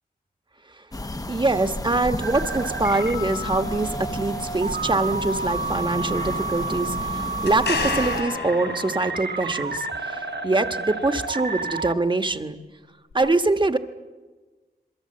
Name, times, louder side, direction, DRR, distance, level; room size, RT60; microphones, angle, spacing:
sound 1, 0.9-8.2, left 2 dB, 20° left, 0.8 m, -33 dB
voice 1, 1.3-12.6 13.1-13.8, right 2 dB, 30° right, 8 dB, 1.3 m, -24 dB
sound 2, 2.2-12.0, right 3 dB, 90° right, 1.3 m, -31 dB
sound 3, 7.5-9.4 13.1-13.2, left 4 dB, 85° left, 6.9 m, -29 dB
27.0 x 23.0 x 7.8 m, 1.3 s
wide cardioid pair, 110°, 17 cm